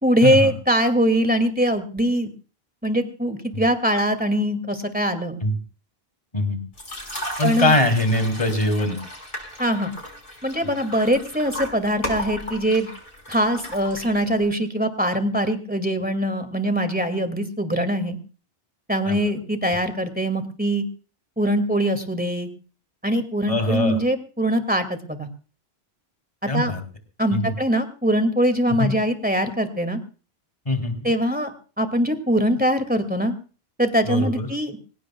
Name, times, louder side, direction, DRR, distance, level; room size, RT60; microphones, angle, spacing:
voice 1, 0.0-2.3 2.8-5.4 7.4-7.7 9.6-9.9 10.4-12.9 13.3-18.2 18.9-20.8 21.4-22.5 23.0-25.3 26.4-26.7 27.2-30.0 31.0-31.5 31.8-33.3 33.8-34.8, equal, 10° right, 8 dB, 2.3 m, -22 dB
sound 1, 6.7-14.5, equal, 60° left, 5.4 m, -35 dB
voice 2, 7.4-9.0 19.1-19.2 23.5-24.0 26.5-26.8 27.3-27.5 28.7-28.9 30.7-31.1 34.0-34.5, left 1 dB, 35° left, 6 dB, 3.5 m, -22 dB
25.5 x 16.5 x 2.4 m, 0.38 s
omnidirectional pair, 1.0 m